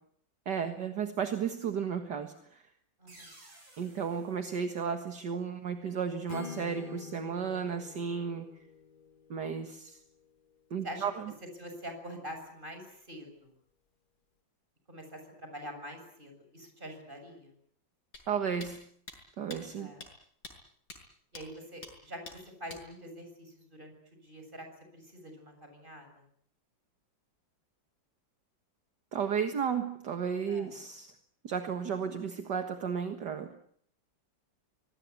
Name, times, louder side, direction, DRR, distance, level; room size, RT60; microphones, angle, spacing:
voice 1, 0.5-2.6 3.8-8.5 9.3-10.0 10.7-11.3 18.3-18.8 19.4-19.9 29.1-31.1 31.4-33.5, right 7 dB, 60° right, 7 dB, 2.2 m, -33 dB
voice 2, 3.0-3.4 10.8-11.1 11.6-13.5 14.9-17.5 19.8-20.0 21.3-24.7 24.9-26.1 30.5-30.7, equal, 25° right, 5 dB, 7.5 m, -45 dB
sound 1, 3.1-5.6, right 1 dB, 80° right, 8.5 m, -57 dB
Acoustic guitar / Strum, 6.3-10.2, left 7 dB, 30° left, 1.0 m, -47 dB
sound 2, 18.1-18.2 18.6-18.7 19.1-19.2 19.5-19.6 20.0-20.1 20.4-20.5 20.9-21.0 21.4-21.5 21.8-21.9 22.3-22.4 22.7-22.8, left 2 dB, 55° left, 7.2 m, -45 dB
25.0 x 20.5 x 9.6 m, 0.65 s
omnidirectional pair, 2.1 m